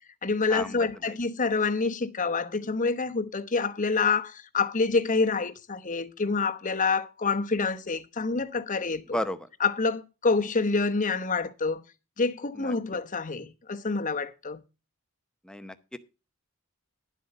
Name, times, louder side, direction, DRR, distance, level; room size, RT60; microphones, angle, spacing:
voice 1, 0.2-9.2 9.6-11.8 12.2-14.6, left 4 dB, 35° left, 1.0 m, -27 dB
voice 2, 15.4-16.0, equal, 5° left, 0.7 m, -33 dB
11.0 x 7.9 x 5.4 m
head